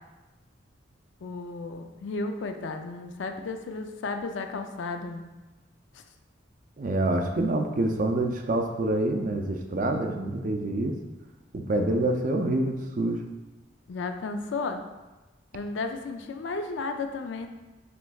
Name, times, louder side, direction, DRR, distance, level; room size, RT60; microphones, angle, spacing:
voice 1, 1.2-5.3 5.9-6.0 13.9-14.8 15.5-17.5, left 3 dB, 80° left, 6 dB, 0.4 m, -33 dB
voice 2, 6.8-10.9 11.5-13.2, right 1 dB, 45° right, 4 dB, 0.4 m, -26 dB
6.0 x 3.2 x 2.3 m, 1.1 s
head